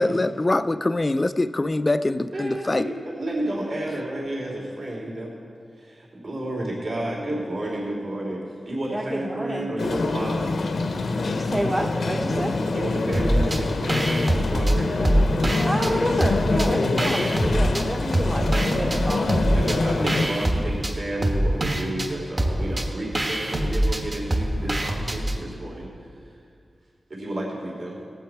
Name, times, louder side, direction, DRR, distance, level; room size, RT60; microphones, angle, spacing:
voice 1, 0.0-2.9, left 2 dB, 30° left, 12 dB, 0.4 m, -23 dB
voice 2, 2.3-5.3 5.7-10.6 12.3-15.1 19.5-26.4 27.1-28.0, right 1 dB, 65° right, -4 dB, 2.9 m, -31 dB
voice 3, 8.9-9.7 11.4-12.5 15.7-19.5, right 1 dB, 15° right, 0 dB, 0.8 m, -29 dB
sound 1, 9.8-20.3, left 3 dB, 75° left, 0.7 m, -25 dB
sound 2, 13.1-13.6 13.9-15.9 16.2-17.8 18.1-25.4, right 1 dB, 35° right, 1.2 m, -24 dB
18.5 x 8.0 x 4.6 m, 2.2 s
wide cardioid pair, 120°, 0 cm